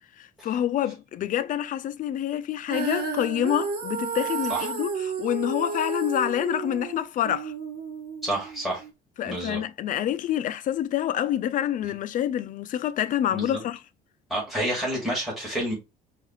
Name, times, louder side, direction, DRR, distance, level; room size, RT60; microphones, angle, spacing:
voice 1, 0.2-7.5 9.2-13.8, left 11 dB, 50° left, 0.4 m, -27 dB
Female singing, 2.7-8.9, right 5 dB, 65° right, 1.0 m, -32 dB
voice 2, 8.2-8.8 9.2-9.6 13.3-13.6 14.3-15.7, right 1 dB, ahead, 2.3 m, -29 dB
4.6 x 2.5 x 3.0 m
cardioid pair, 110°, 17 cm